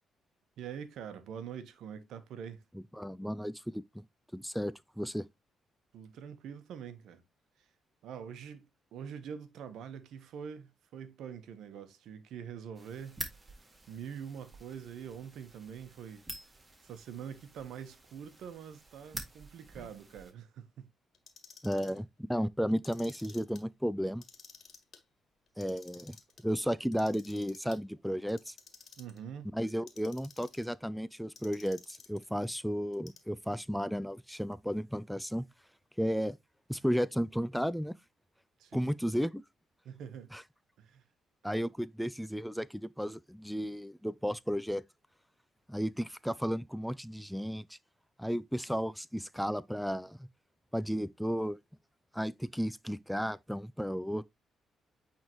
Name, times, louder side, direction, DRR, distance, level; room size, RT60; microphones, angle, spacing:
voice 1, 0.6-2.6 5.9-7.2 7.6-7.7 8.0-13.2 13.9-16.2 16.8-20.9 29.0-29.5 38.6-39.0 39.8-40.3 40.8-41.0, right 8 dB, 75° right, 1.0 m, -45 dB
voice 2, 2.7-4.0 4.3-5.3 21.6-24.2 25.6-26.2 26.4-28.6 29.4-35.5 36.0-36.4 36.7-37.9 38.7-39.4 40.3-40.4 41.4-44.8 45.7-47.8 48.2-50.3 50.7-51.6 52.1-54.2, equal, ahead, 0.3 m, -34 dB
sound 1, 12.7-20.3, right 2 dB, 20° right, 1.8 m, -48 dB
Clock, 21.1-22.0 22.7-23.6 24.1-25.0 25.5-26.4 26.9-27.8 28.3-29.2 29.7-30.7 31.4-32.3 32.9-33.5, left 6 dB, 55° left, 1.7 m, -54 dB
8.8 x 3.6 x 3.0 m
cardioid pair, 90°, 0 cm